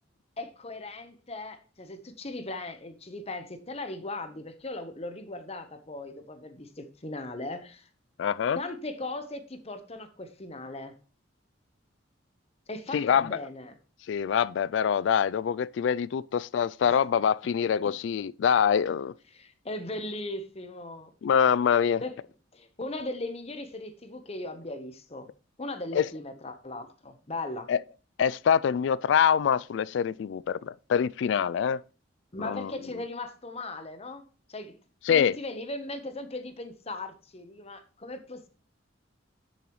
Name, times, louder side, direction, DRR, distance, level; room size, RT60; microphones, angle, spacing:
voice 1, 0.4-7.9 8.5-11.0 12.7-13.8 16.8-17.0 17.8-17.9 19.3-21.1 22.0-22.2 22.5-25.3 25.6-27.7 32.3-34.7 35.1-38.5, left 2 dB, 35° left, 1.0 m, -38 dB
voice 2, 8.2-8.6 12.9-13.4 14.1-19.1 21.2-22.0 25.9-26.1 27.7-27.8 28.2-31.8 32.4-32.7 35.1-35.3, left 7 dB, 70° left, 0.3 m, -25 dB
9.9 x 7.0 x 3.1 m
head